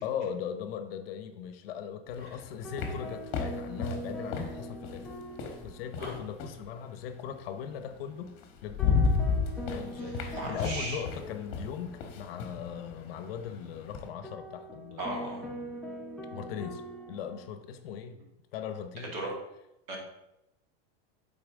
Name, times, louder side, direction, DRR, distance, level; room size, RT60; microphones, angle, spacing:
voice 1, 0.0-5.2 5.6-8.4 8.6-9.0 9.7-15.1 16.3-16.8 17.1-18.2 18.5-19.1, left 8 dB, 65° left, 9 dB, 0.8 m, -39 dB
sound 1, 2.1-6.7 7.9-8.0 8.4-14.1, left 5 dB, 40° left, 1.1 m, -33 dB
sound 2, 2.6-6.2 6.5-6.6 8.8-12.1 14.2-17.5, equal, 5° left, 0.4 m, -42 dB
voice 2, 10.0-11.0 15.0-15.5 19.1-19.3 19.9-20.0, right 2 dB, 45° right, -1 dB, 2.1 m, -37 dB
8.7 x 4.1 x 3.6 m, 0.88 s
supercardioid pair, 155°, 32 cm